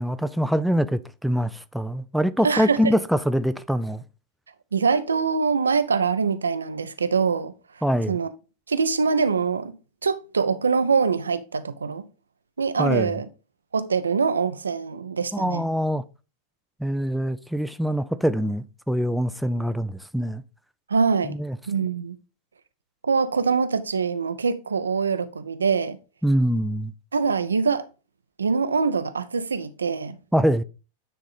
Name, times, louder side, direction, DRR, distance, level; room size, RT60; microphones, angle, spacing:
voice 1, 0.0-4.0 7.8-8.2 12.8-13.1 15.3-16.0 16.8-20.4 21.2-21.6 26.2-26.9 30.3-30.6, equal, ahead, 0.4 m, -24 dB
voice 2, 2.4-2.9 4.7-7.5 8.1-8.3 8.7-9.8 10.0-12.1 12.6-13.3 13.7-15.6 20.9-21.4 21.7-22.2 23.0-26.0 27.1-27.9 28.4-30.2, right 5 dB, 75° right, 0.6 m, -24 dB
9.2 x 3.7 x 3.9 m
figure-of-eight pair, 90°, 0 cm